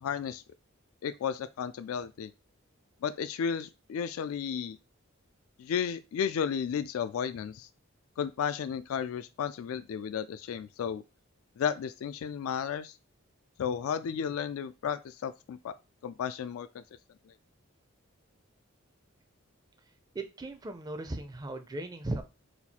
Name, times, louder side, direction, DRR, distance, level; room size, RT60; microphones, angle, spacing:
voice 1, 0.0-0.4 1.0-2.3 3.0-4.8 5.6-7.7 8.2-11.0 11.6-13.0 13.6-15.8 16.0-16.8 17.3-17.4, left 7 dB, 75° left, 0.3 m, -33 dB
voice 2, 20.1-22.2, right 2 dB, 20° right, 0.4 m, -37 dB
4.3 x 2.4 x 4.1 m
head